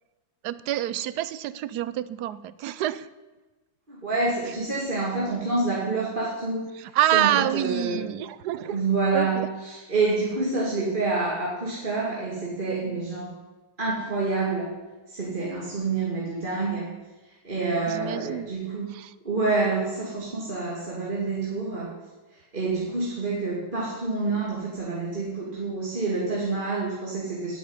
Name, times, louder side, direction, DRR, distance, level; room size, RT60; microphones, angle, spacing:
voice 1, 0.4-3.1 6.7-8.8 9.1-9.5 17.9-18.5 18.9-19.1, right 13 dB, 85° right, 16 dB, 1.2 m, -27 dB
voice 2, 3.9-6.7 7.1-8.1 8.7-13.3 13.8-14.7 15.1-16.9 17.4-18.9 19.2-21.9 22.5-27.6, right 3 dB, 30° right, -5 dB, 2.5 m, -27 dB
9.5 x 8.9 x 9.7 m, 1.2 s
omnidirectional pair, 1.7 m